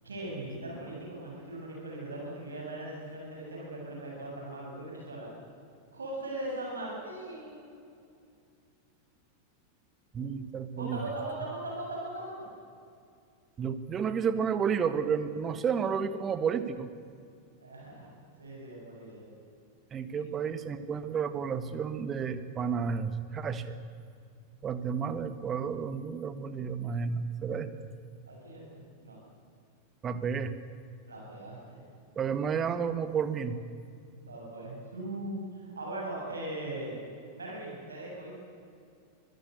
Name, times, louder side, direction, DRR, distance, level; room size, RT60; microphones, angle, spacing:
voice 1, 0.0-5.3 5.9-7.7 10.7-12.3 17.6-18.1 18.4-19.3 20.2-20.3 28.3-29.2 31.1-31.8 34.2-37.0 37.3-38.3, right 1 dB, 75° right, -2 dB, 7.7 m, -39 dB
voice 2, 10.1-11.0 13.6-16.9 19.9-23.8 24.6-27.9 30.0-30.5 32.1-33.6, right 6 dB, 25° right, 11 dB, 1.6 m, -31 dB
24.5 x 16.5 x 8.3 m, 2.4 s
figure-of-eight pair, 90°, 0 cm